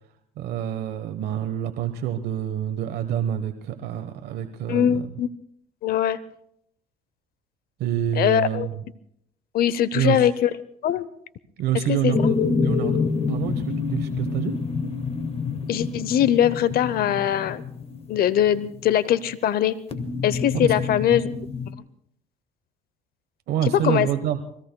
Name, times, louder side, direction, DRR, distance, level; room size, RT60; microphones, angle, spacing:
voice 1, 0.4-5.1 7.8-8.8 9.9-10.3 11.6-13.0 13.3-14.5 20.5-20.7 23.5-24.4, right 10 dB, 75° right, 8 dB, 1.2 m, -27 dB
voice 2, 4.7-5.3 5.8-6.2 8.1-8.7 9.5-10.5 10.8-11.1 11.9-12.1 15.7-17.6 18.1-19.8 20.2-21.3 23.8-24.1, left 10 dB, 65° left, 17 dB, 0.8 m, -21 dB
sound 1, 12.1-19.0 19.9-21.7, left 5 dB, 35° left, 1.4 m, -27 dB
29.5 x 20.5 x 2.3 m, 0.72 s
cardioid pair, 110°, 17 cm